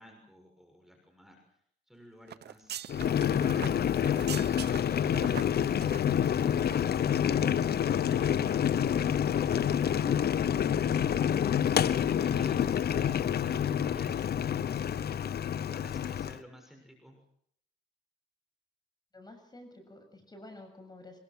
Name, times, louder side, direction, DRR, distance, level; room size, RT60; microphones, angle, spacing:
voice 1, 0.0-1.6 1.9-7.3 11.8-15.1 15.6-17.2, equal, ahead, 3 dB, 6.3 m, -55 dB
sound 1, 2.3-7.0 7.2-7.4 7.8-8.5 8.9-9.1 9.4-9.6 9.9-10.0, right 10 dB, 55° right, 0.9 m, -44 dB
Boiling, 2.9-16.4, left 9 dB, 55° left, 0.9 m, -28 dB
voice 2, 19.1-21.2, left 1 dB, 20° left, 6 dB, 7.4 m, -51 dB
24.0 x 22.0 x 6.2 m, 0.66 s
cardioid pair, 90°, 20 cm